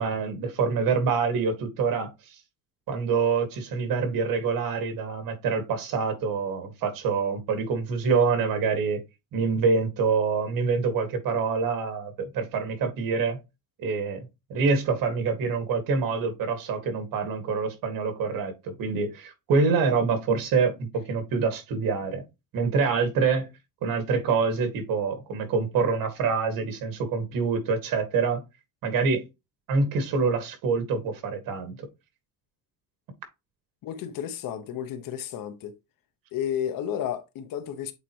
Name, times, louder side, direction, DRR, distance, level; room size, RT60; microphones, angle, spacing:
voice 1, 0.0-2.1 2.9-9.0 9.3-13.4 13.8-22.2 22.5-23.5 23.8-28.4 28.8-29.3 29.7-31.9, right 5 dB, 75° right, 2.1 m, -26 dB
voice 2, 33.8-35.8 36.3-37.9, left 9 dB, 70° left, 1.2 m, -32 dB
8.3 x 4.1 x 3.0 m
cardioid pair, 135°, 35 cm